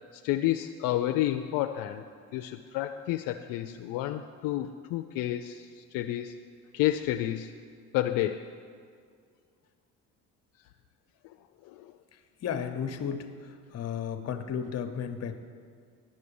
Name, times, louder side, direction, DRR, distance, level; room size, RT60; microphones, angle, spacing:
voice 1, 0.1-2.0 2.3-6.3 6.7-7.5 7.9-8.5 11.6-11.9, left 13 dB, 80° left, 6 dB, 0.5 m, -30 dB
voice 2, 12.4-13.2 13.7-15.4, left 7 dB, 50° left, 8 dB, 1.0 m, -33 dB
11.5 x 6.4 x 7.0 m, 2.1 s
cardioid pair, 95°, 33 cm